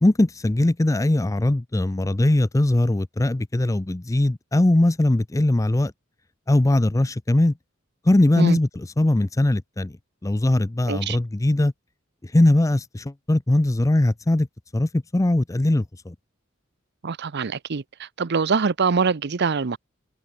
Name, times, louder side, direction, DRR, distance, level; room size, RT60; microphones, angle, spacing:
voice 1, 0.0-5.9 6.5-7.5 8.1-9.9 10.2-11.7 12.2-14.5 14.7-16.1, left 1 dB, 15° left, 0.5 m, -20 dB
voice 2, 10.9-11.2 17.0-19.8, right 5 dB, 55° right, 0.7 m, -24 dB
head